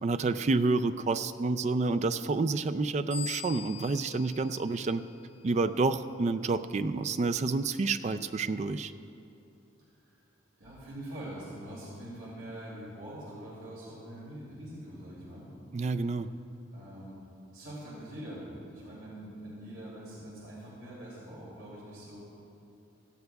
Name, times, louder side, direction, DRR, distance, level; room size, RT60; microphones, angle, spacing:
voice 1, 0.0-5.0 5.4-8.9 15.7-16.3, right 3 dB, 35° right, 11 dB, 0.3 m, -29 dB
sound 1, 3.1-5.6, left 6 dB, 5° left, 3.1 m, -43 dB
voice 2, 10.6-15.5 16.7-17.2 17.5-22.2, right 1 dB, 70° right, -7 dB, 2.6 m, -44 dB
17.5 x 14.5 x 2.3 m, 2.7 s
head